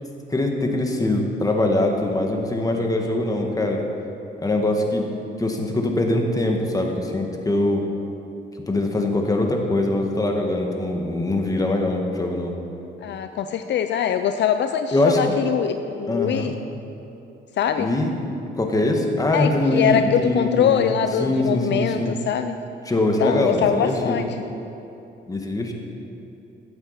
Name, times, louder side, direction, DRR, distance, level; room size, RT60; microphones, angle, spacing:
voice 1, 0.3-3.8 4.4-5.1 5.4-7.8 8.7-12.5 14.9-15.2 16.1-16.5 17.8-18.1 18.5-20.9 21.2-22.2 22.8-24.2 25.3-25.7, left 2 dB, 15° left, 2 dB, 1.6 m, -22 dB
voice 2, 13.0-16.5 17.6-17.9 19.3-22.6 23.2-24.3, left 8 dB, 65° left, 8 dB, 0.5 m, -23 dB
12.0 x 8.1 x 5.8 m, 2.9 s
cardioid pair, 90°, 20 cm